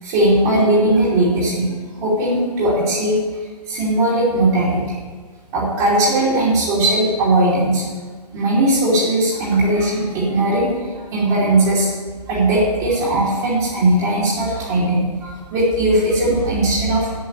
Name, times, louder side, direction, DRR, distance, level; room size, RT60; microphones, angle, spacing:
voice 1, 0.0-3.2 3.7-4.8 5.5-7.8 8.3-11.9 12.3-17.1, right 1 dB, 25° right, -8 dB, 2.9 m, -18 dB
8.6 x 8.1 x 8.1 m, 1.5 s
figure-of-eight pair, 135°, 21 cm